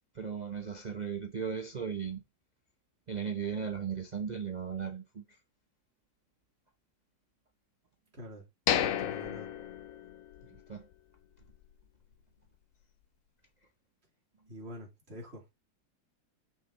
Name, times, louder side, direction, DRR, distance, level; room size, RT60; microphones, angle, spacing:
voice 1, 0.1-2.2 3.1-5.4 10.5-10.9, right 7 dB, 65° right, 0.4 m, -37 dB
voice 2, 8.1-8.4 8.7-9.5 14.5-15.5, equal, 30° right, 3.3 m, -46 dB
sound 1, 8.7-10.6 10.9-11.0 11.5-11.7, left 10 dB, 65° left, 0.8 m, -32 dB
6.4 x 5.8 x 4.1 m
omnidirectional pair, 2.1 m